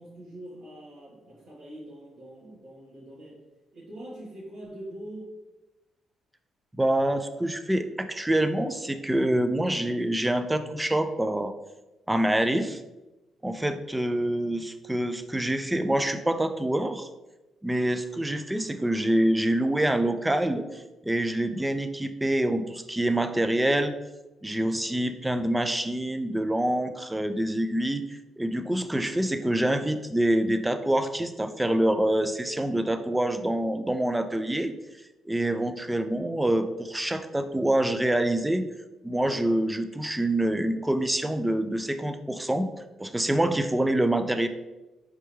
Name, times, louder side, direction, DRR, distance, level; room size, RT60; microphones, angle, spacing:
voice 1, 0.0-3.4 3.7-5.4, right 1 dB, 85° right, -11 dB, 1.5 m, -43 dB
voice 2, 6.8-11.5 12.1-12.8 13.4-17.1 17.6-23.9 24.4-34.7 35.3-38.7 39.0-42.7 43.0-44.5, right 1 dB, 10° right, 9 dB, 0.4 m, -26 dB
4.5 x 3.5 x 3.1 m, 1.0 s
cardioid pair, 90°, 0 cm